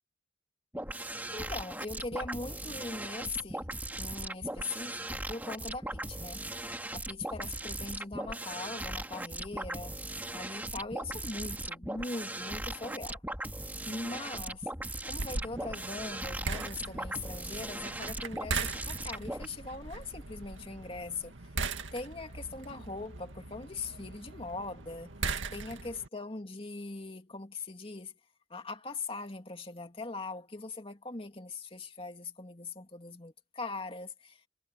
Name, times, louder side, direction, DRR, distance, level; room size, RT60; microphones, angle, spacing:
sound 1, 0.7-19.5, right 1 dB, 10° right, 2.0 m, -38 dB
voice 1, 1.3-3.7 4.0-6.5 6.9-10.0 10.3-13.2 13.9-14.7 15.1-21.4 21.9-25.1 25.5-28.1 28.5-34.4, left 3 dB, 30° left, 2.2 m, -41 dB
sound 2, 15.2-26.1, right 4 dB, 80° right, 2.0 m, -40 dB
head